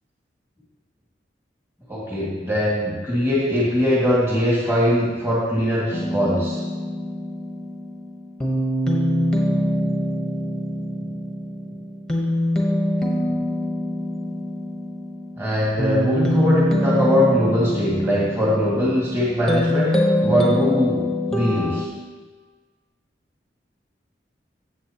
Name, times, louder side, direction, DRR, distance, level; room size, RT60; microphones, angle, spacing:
voice 1, 1.9-6.6 15.4-19.9 20.2-21.0 21.3-21.9, equal, 15° right, -7 dB, 1.9 m, -21 dB
sound 1, 5.9-21.9, left 1 dB, 5° left, 1.0 m, -24 dB
13.0 x 7.8 x 2.9 m, 1.4 s
head